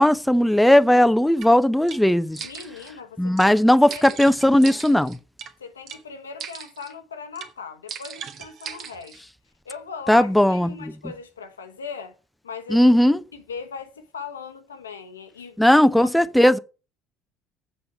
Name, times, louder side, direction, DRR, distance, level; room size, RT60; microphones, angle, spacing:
voice 1, 0.0-2.5 3.2-5.2 10.1-10.9 12.7-13.2 15.6-16.6, left 1 dB, 5° left, 0.6 m, -17 dB
sound 1, 1.4-1.5 1.9-2.0 2.3-2.9 3.4-3.5 3.9-5.5 5.9-6.0 6.4-6.9 7.3-7.5 7.9-9.2, right 7 dB, 50° right, 1.4 m, -38 dB
voice 2, 2.4-4.1 5.6-9.2 9.6-12.2 12.4-12.9 13.3-15.8 16.4-16.6, left 5 dB, 80° left, 0.9 m, -39 dB
7.9 x 6.8 x 6.7 m
figure-of-eight pair, 55°, 0 cm